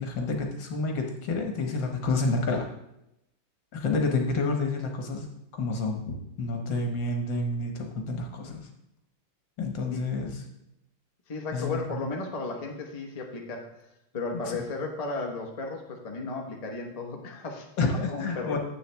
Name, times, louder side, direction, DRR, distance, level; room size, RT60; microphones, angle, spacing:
voice 1, 0.0-2.7 3.7-5.3 5.5-8.7 9.6-10.4 11.5-12.0 14.4-14.5 17.8-18.6, left 3 dB, 65° left, 3 dB, 1.8 m, -29 dB
voice 2, 11.3-13.7 14.1-18.6, left 3 dB, 25° left, 0 dB, 0.9 m, -34 dB
9.7 x 7.9 x 3.4 m, 0.84 s
omnidirectional pair, 2.2 m